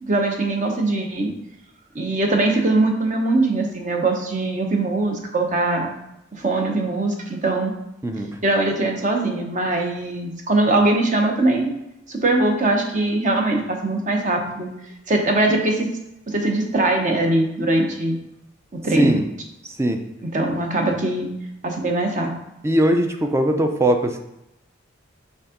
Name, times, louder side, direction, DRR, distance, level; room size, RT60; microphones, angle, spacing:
voice 1, 0.0-1.3 1.9-5.9 6.3-7.7 8.4-11.7 12.1-15.9 16.3-18.2 18.7-19.2 20.3-21.3 21.6-22.3, right 2 dB, 40° right, 2 dB, 0.9 m, -21 dB
voice 2, 8.0-8.4 19.0-19.2 19.6-20.0 22.6-24.2, right 1 dB, 15° right, 5 dB, 0.5 m, -20 dB
5.5 x 3.5 x 5.0 m, 0.87 s
head